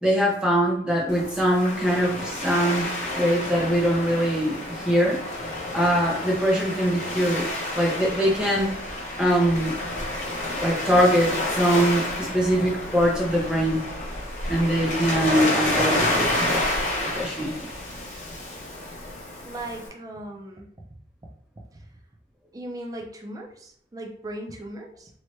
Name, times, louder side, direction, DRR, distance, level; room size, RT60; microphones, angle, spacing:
voice 1, 0.0-5.2 5.7-7.5 7.7-8.7 9.2-9.7 10.6-13.8 14.5-16.6 17.0-17.7, equal, 5° right, -3 dB, 0.7 m, -22 dB
Waves surf, 1.1-19.9, left 1 dB, 40° left, 0.7 m, -29 dB
voice 2, 19.4-20.7 22.5-25.1, right 1 dB, 20° right, 1 dB, 0.4 m, -37 dB
3.1 x 2.1 x 3.1 m, 0.63 s
head